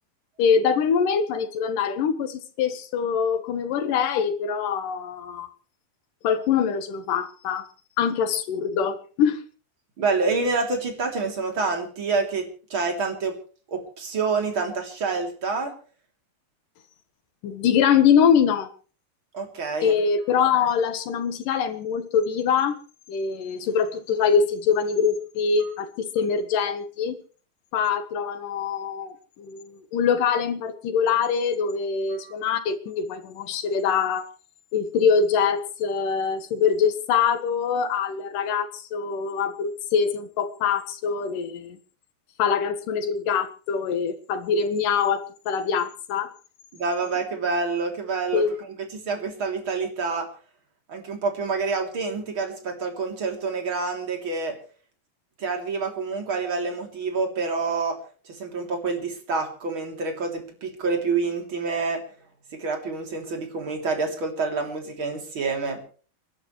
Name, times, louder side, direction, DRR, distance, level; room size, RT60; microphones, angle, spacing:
voice 1, 0.4-5.5 6.2-7.6 8.0-9.4 17.4-18.7 19.8-22.8 23.1-25.9 26.1-27.1 27.7-29.1 29.4-34.3 34.7-41.8 42.4-46.3 48.3-48.5, left 6 dB, 80° left, 10 dB, 3.1 m, -24 dB
voice 2, 10.0-13.4 13.7-15.7 19.3-20.0 25.6-25.7 32.2-32.3 46.7-50.3 50.9-54.5 55.4-58.0 58.3-62.0 62.5-65.8, right 4 dB, 40° right, 3 dB, 3.9 m, -27 dB
29.5 x 12.0 x 3.2 m, 0.40 s
omnidirectional pair, 3.8 m